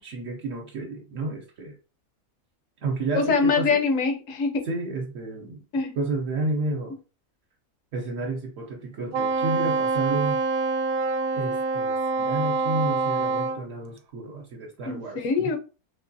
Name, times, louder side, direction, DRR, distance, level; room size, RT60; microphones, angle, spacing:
voice 1, 0.0-1.8 2.8-3.8 4.6-5.6 5.9-7.0 7.9-10.4 11.3-15.5, right 3 dB, 65° right, 0 dB, 1.0 m, -31 dB
voice 2, 3.1-4.6 5.7-5.9 14.9-15.6, left 4 dB, 65° left, 5 dB, 1.1 m, -24 dB
Wind instrument woodwind instrument, 9.1-13.6, right 3 dB, 85° right, 1.1 m, -25 dB
3.8 x 2.9 x 2.7 m, 0.32 s
omnidirectional pair, 1.5 m